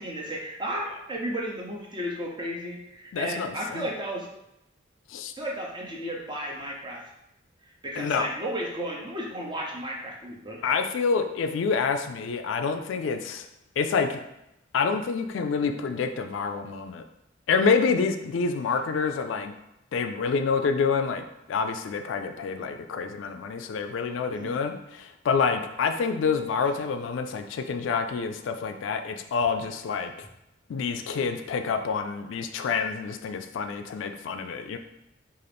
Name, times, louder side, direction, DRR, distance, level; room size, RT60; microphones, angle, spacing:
voice 1, 0.0-4.3 5.4-7.1 7.6-10.6 24.3-24.5, right 1 dB, 25° right, -2 dB, 0.7 m, -34 dB
voice 2, 3.1-3.9 5.1-5.3 8.0-8.3 10.6-13.5 13.8-14.2 14.7-17.0 17.5-19.5 19.9-30.1 30.7-34.8, left 5 dB, 75° left, 7 dB, 0.3 m, -27 dB
3.8 x 2.5 x 3.3 m, 0.85 s
head